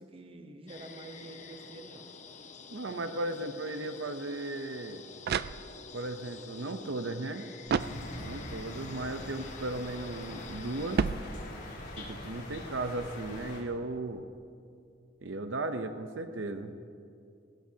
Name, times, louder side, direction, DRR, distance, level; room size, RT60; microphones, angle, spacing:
voice 1, 0.0-2.1 2.8-3.0 8.8-9.1, right 2 dB, 30° right, 6 dB, 0.8 m, -48 dB
sound 1, 0.7-11.0, left 5 dB, 40° left, 0.8 m, -49 dB
voice 2, 2.7-5.0 5.9-7.4 8.2-11.1 12.0-14.3 15.2-16.7, right 2 dB, 70° right, 8 dB, 0.7 m, -36 dB
sound 2, 4.9-6.1 7.6-8.5 10.9-11.9, right 6 dB, 55° right, 0.3 m, -33 dB
sound 3, 7.8-13.6, left 1 dB, 60° left, 3.2 m, -43 dB
19.5 x 16.5 x 2.8 m, 2.4 s
head